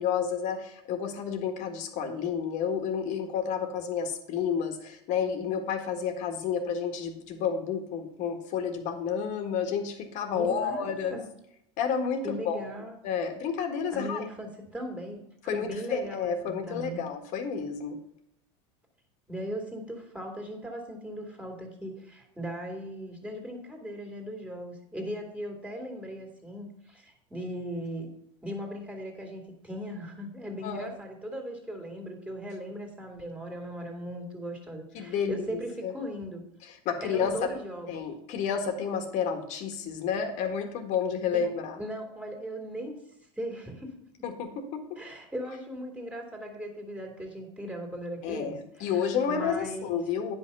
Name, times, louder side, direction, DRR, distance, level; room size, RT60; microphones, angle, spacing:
voice 1, 0.0-11.2 11.8-12.7 13.0-14.2 15.5-18.0 30.6-30.9 34.9-35.9 36.6-37.5 37.9-41.8 44.2-45.0 48.2-50.4, left 7 dB, 50° left, 6 dB, 1.7 m, -30 dB
voice 2, 10.3-11.3 12.2-13.0 13.9-15.3 15.5-17.0 19.3-28.1 28.4-36.4 37.0-37.9 41.3-41.4 41.8-43.0 43.4-44.1 45.0-50.0, equal, 10° right, 2 dB, 2.4 m, -38 dB
9.8 x 5.6 x 5.4 m, 0.77 s
supercardioid pair, 115°, 15 cm